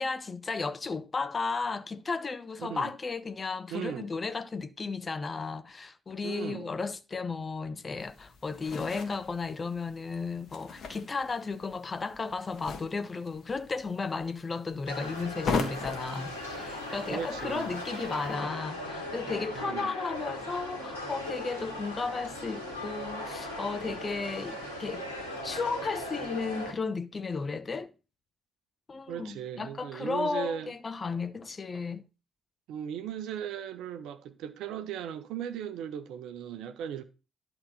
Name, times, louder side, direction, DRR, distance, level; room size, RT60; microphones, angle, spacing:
voice 1, 0.0-25.0 25.4-27.9 28.9-32.1, left 4 dB, 30° left, 0.8 m, -34 dB
voice 2, 2.6-2.9 3.7-4.1 6.2-6.7 17.1-17.7 19.5-19.9 29.1-30.7 32.7-37.0, right 9 dB, 60° right, 0.8 m, -37 dB
sound 1, 8.0-18.3, left 4 dB, 50° left, 1.6 m, -40 dB
sound 2, 14.9-26.7, left 1 dB, 80° left, 2.3 m, -38 dB
11.0 x 3.9 x 6.3 m
figure-of-eight pair, 45°, 0 cm